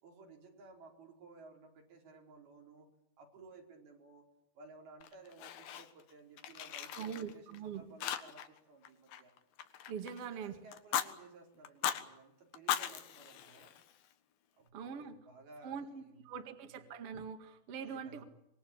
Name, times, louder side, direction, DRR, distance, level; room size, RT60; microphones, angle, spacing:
voice 1, 0.0-2.9 3.2-4.3 4.5-9.3 10.0-13.7 14.6-16.5 17.8-18.3, right 3 dB, 85° right, 1 dB, 6.4 m, -57 dB
Fire, 5.0-6.1 6.4-7.6 8.0-8.6 8.8-10.2 10.7-11.1 11.6-12.0 12.5-14.1, left 10 dB, 75° left, 3.2 m, -38 dB
voice 2, 7.0-7.8 9.9-10.5 14.7-15.2 15.6-18.2, right 7 dB, 45° right, 6 dB, 2.6 m, -43 dB
25.5 x 22.0 x 8.7 m, 0.83 s
omnidirectional pair, 4.3 m